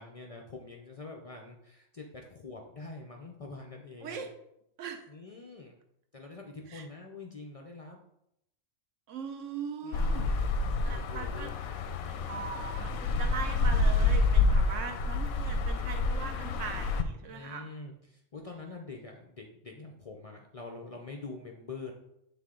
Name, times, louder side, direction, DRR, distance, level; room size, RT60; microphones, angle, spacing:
voice 1, 0.0-4.3 5.1-5.8 6.1-8.0 9.8-11.5 17.3-21.9, left 3 dB, 60° left, 2 dB, 0.3 m, -45 dB
voice 2, 9.1-10.5 10.8-11.5 12.3-17.7, right 6 dB, 70° right, 5 dB, 1.1 m, -40 dB
sound 1, 9.9-17.0, left 3 dB, 90° left, 1.0 m, -28 dB
7.8 x 3.5 x 3.7 m, 0.79 s
omnidirectional pair, 1.4 m